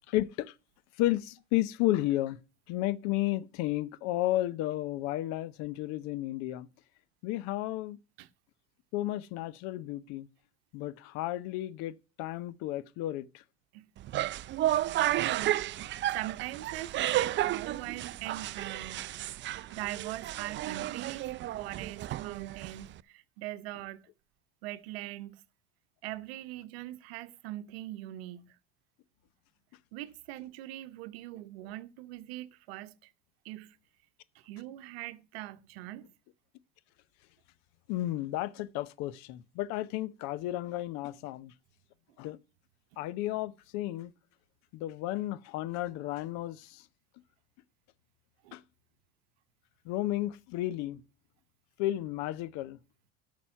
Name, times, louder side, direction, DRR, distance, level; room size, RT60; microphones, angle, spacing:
voice 1, 0.1-0.5 1.0-2.4 2.7-6.7 7.2-8.0 8.9-10.3 10.7-13.3 37.9-41.5 42.2-42.4 43.0-44.1 44.7-46.8 48.5-48.6 49.9-51.0 51.8-52.8, left 15 dB, 60° left, 0.7 m, -32 dB
sound 1, 14.0-23.0, right 14 dB, 35° right, 0.5 m, -32 dB
voice 2, 15.2-15.9 16.1-19.1 19.7-21.3 21.5-24.1 24.6-25.4 26.0-28.5 29.9-33.1 33.4-33.8 34.4-36.1 48.4-48.6, right 15 dB, 70° right, 0.9 m, -41 dB
11.0 x 6.2 x 5.7 m
hypercardioid pair, 85°, 31 cm